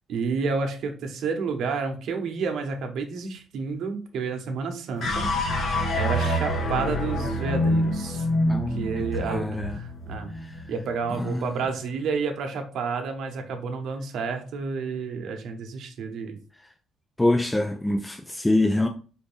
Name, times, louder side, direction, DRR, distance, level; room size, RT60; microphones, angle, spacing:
voice 1, 0.1-10.3 10.7-16.4, right 5 dB, 75° right, 0.8 m, -30 dB
sound 1, 5.0-11.4, left 1 dB, 60° left, 1.1 m, -27 dB
voice 2, 8.5-9.8 10.3-10.7 11.1-11.6 17.2-18.9, left 2 dB, 10° left, 0.3 m, -26 dB
4.8 x 2.6 x 3.4 m
cardioid pair, 130°, 0 cm